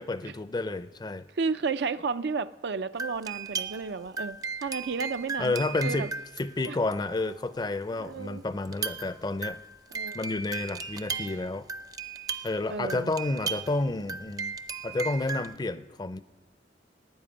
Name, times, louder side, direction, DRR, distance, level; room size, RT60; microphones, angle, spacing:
voice 1, 0.0-1.3 5.4-6.1 6.4-9.6 10.1-11.7 12.4-14.6 14.8-16.2, left 2 dB, 25° left, 13 dB, 0.5 m, -30 dB
voice 2, 1.3-6.1 6.7-6.8 8.0-8.4 9.9-10.2 12.7-13.1, right 4 dB, 65° right, 12 dB, 0.5 m, -32 dB
sound 1, 3.0-7.5 8.7-15.5, right 5 dB, 20° right, 0.5 m, -36 dB
12.5 x 9.3 x 9.7 m, 1.1 s
head